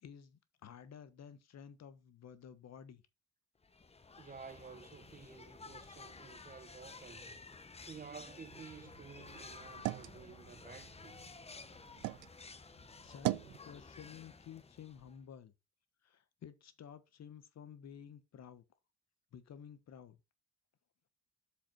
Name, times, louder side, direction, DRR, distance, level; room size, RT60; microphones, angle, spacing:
voice 1, 0.0-3.0 13.0-15.5 16.0-18.6 19.3-20.2, left 8 dB, 60° left, 1.2 m, -53 dB
sound 1, 3.6-15.2, left 4 dB, 20° left, 0.9 m, -53 dB
voice 2, 4.2-7.4 7.9-11.2, right 6 dB, 30° right, 0.7 m, -52 dB
sound 2, 8.5-12.3 12.7-13.6, right 17 dB, 85° right, 0.5 m, -41 dB
7.4 x 5.3 x 4.4 m
cardioid pair, 90°, 30 cm